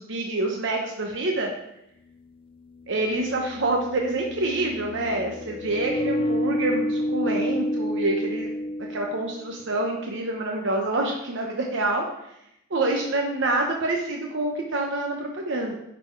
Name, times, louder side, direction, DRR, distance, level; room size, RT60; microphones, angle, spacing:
voice 1, 0.0-1.5 2.9-8.5 8.8-12.0 12.7-15.7, right 2 dB, 65° right, 1 dB, 0.9 m, -27 dB
sound 1, 1.1-1.2 2.7-9.6, left 1 dB, 25° left, 0.4 m, -29 dB
11.0 x 4.2 x 4.5 m, 0.81 s
head